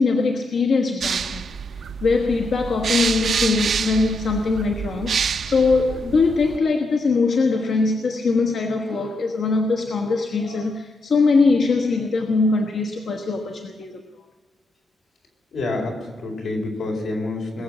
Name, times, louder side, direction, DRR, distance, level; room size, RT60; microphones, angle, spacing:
voice 1, 0.0-1.5 2.0-14.0, left 4 dB, 70° left, 3 dB, 1.2 m, -21 dB
sound 1, 1.0-6.6, right 6 dB, 60° right, 0.6 m, -27 dB
voice 2, 15.5-17.6, left 2 dB, 85° left, 0 dB, 4.5 m, -28 dB
21.5 x 7.3 x 8.6 m, 1.4 s
wide cardioid pair, 145°, 0 cm